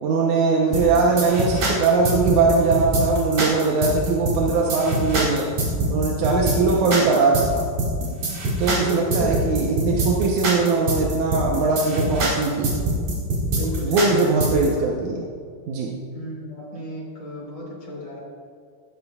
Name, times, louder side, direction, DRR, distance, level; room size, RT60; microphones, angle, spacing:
voice 1, 0.0-5.5 5.9-7.7 8.6-12.7 13.8-15.3 15.7-15.9, right 4 dB, 70° right, -2 dB, 1.9 m, -21 dB
sound 1, 0.7-14.7, right 1 dB, 45° right, 2.8 m, -24 dB
voice 2, 6.4-6.9 8.5-9.5 9.8-10.0 13.5-14.5 16.1-18.2, left 1 dB, 25° left, -5 dB, 2.6 m, -33 dB
16.0 x 11.0 x 2.4 m, 2.1 s
omnidirectional pair, 4.3 m